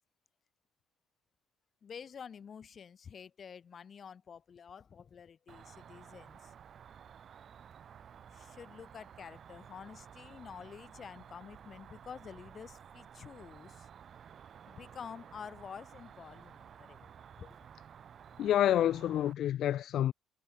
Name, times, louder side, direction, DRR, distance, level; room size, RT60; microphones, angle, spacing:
voice 1, 1.8-6.5 8.3-13.9 14.7-17.1 17.4-17.6, left 7 dB, 35° left, 6.8 m, -49 dB
Cricket, 5.5-19.3, right 8 dB, 45° right, 4.9 m, -54 dB
voice 2, 18.4-20.1, left 11 dB, 60° left, 0.4 m, -28 dB
cardioid pair, 120°, 0 cm